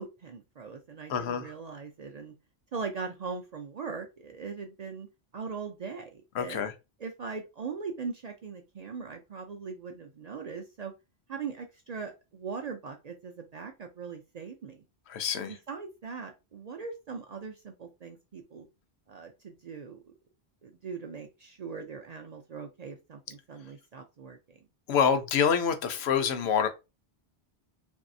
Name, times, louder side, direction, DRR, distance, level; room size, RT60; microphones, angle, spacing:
voice 1, 0.0-2.3 2.7-5.1 5.3-6.6 7.0-10.9 11.3-14.8 15.4-18.7 19.1-20.1 20.6-24.6, right 5 dB, 55° right, 0.5 m, -40 dB
voice 2, 1.1-1.5 6.4-6.7 15.1-15.5 24.9-26.7, left 7 dB, 80° left, 0.9 m, -26 dB
3.0 x 2.7 x 2.6 m
omnidirectional pair, 1.1 m